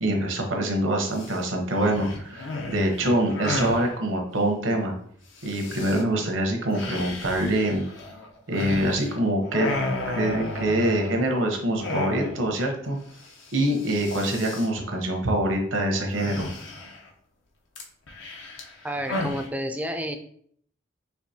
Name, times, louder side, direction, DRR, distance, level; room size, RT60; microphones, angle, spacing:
voice 1, 0.0-4.9 5.4-7.9 8.5-9.7 10.1-13.0 13.5-16.5, right 1 dB, 85° right, 3 dB, 0.9 m, -25 dB
sound 1, 1.1-1.4 1.7-3.9 5.4-6.0 6.7-9.2 9.4-11.4 11.8-12.5 12.8-12.9 13.2-13.5 13.7-14.7 16.1-17.1 17.7-19.5, left 2 dB, 75° left, 0.7 m, -33 dB
voice 2, 18.8-20.2, equal, 10° right, 6 dB, 0.3 m, -30 dB
4.6 x 3.0 x 2.7 m, 0.62 s
head